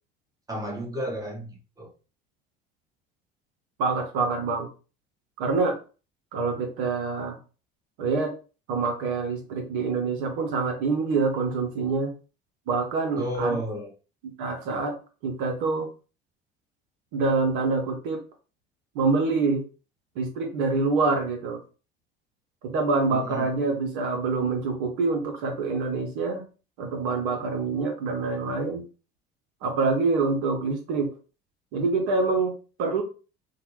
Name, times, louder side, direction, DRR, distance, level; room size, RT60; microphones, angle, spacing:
voice 1, 0.5-1.9 13.2-13.9 23.1-23.4, right 1 dB, 10° right, -2 dB, 1.2 m, -32 dB
voice 2, 3.8-4.7 5.4-5.8 6.3-7.4 8.0-8.3 8.7-12.1 12.7-13.6 14.2-14.9 15.2-15.9 17.1-18.2 18.9-19.6 20.2-21.6 22.6-26.4 26.8-28.8 29.6-31.1 31.7-33.0, right 4 dB, 60° right, 3 dB, 0.7 m, -26 dB
2.8 x 2.2 x 3.2 m, 0.34 s
figure-of-eight pair, 60°, 30 cm